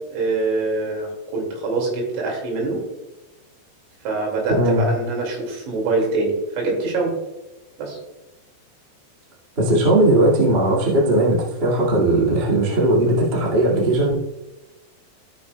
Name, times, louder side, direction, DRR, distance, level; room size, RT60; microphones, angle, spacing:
voice 1, 0.1-1.1 1.3-2.8 4.0-7.1 7.8-8.0, right 3 dB, 80° right, -1 dB, 4.8 m, -24 dB
voice 2, 4.5-4.9 9.5-14.2, right 1 dB, 30° right, -5 dB, 1.0 m, -18 dB
16.0 x 6.6 x 2.3 m, 1.0 s
omnidirectional pair, 5.3 m